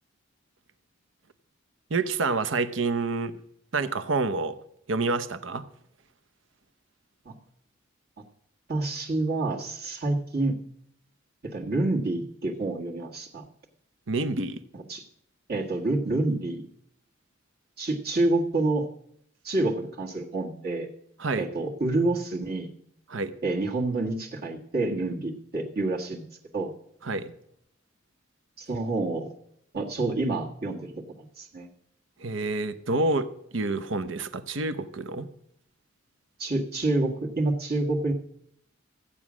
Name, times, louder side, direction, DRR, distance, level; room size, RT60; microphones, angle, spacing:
voice 1, 1.9-3.3 3.7-4.5 4.9-5.6 14.1-14.6 21.2-21.5 23.1-23.3 27.0-27.3 32.2-35.3, right 3 dB, 80° right, 13 dB, 0.8 m, -28 dB
voice 2, 8.7-10.6 11.4-13.4 14.7-15.0 15.5-16.6 17.8-18.9 19.4-20.9 21.3-22.7 23.4-26.2 26.5-26.7 28.6-29.3 29.7-31.7 36.4-38.1, right 2 dB, 55° right, -2 dB, 1.6 m, -28 dB
14.5 x 8.6 x 6.2 m, 0.73 s
head